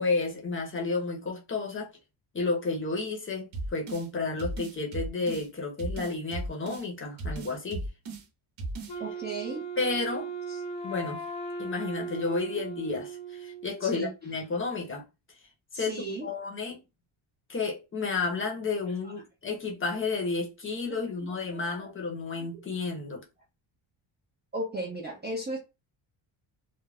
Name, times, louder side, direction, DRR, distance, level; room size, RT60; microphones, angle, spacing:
voice 1, 0.0-1.9 2.3-7.9 9.8-10.3 10.8-11.2 11.6-15.0 15.7-15.9 16.2-16.8 17.5-23.3, left 3 dB, 25° left, 0.6 m, -31 dB
sound 1, 3.5-4.1 4.4-5.5 5.8-6.9 7.2-8.2 8.6-9.0, right 2 dB, 65° right, 0.8 m, -36 dB
Wind instrument woodwind instrument, 8.9-13.9, right 3 dB, 65° left, 0.7 m, -37 dB
voice 2, 9.0-9.7 10.5-10.6 13.8-14.1 14.7-14.9 15.7-16.3 19.0-19.1 20.9-21.9 22.4-22.6 24.5-25.6, right 2 dB, 25° right, 0.3 m, -37 dB
2.3 x 2.2 x 3.2 m
cardioid pair, 165°, 49 cm